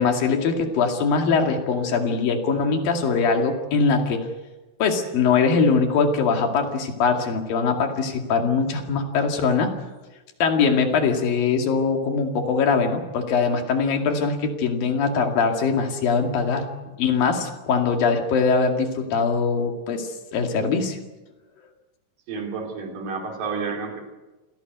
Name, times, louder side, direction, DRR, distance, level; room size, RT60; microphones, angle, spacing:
voice 1, 0.0-4.3 4.8-9.7 10.4-16.7 17.0-21.0, left 5 dB, 85° left, 4 dB, 4.1 m, -22 dB
voice 2, 22.3-24.0, right 5 dB, 70° right, 2 dB, 4.8 m, -30 dB
27.5 x 17.5 x 8.1 m, 1.1 s
omnidirectional pair, 3.9 m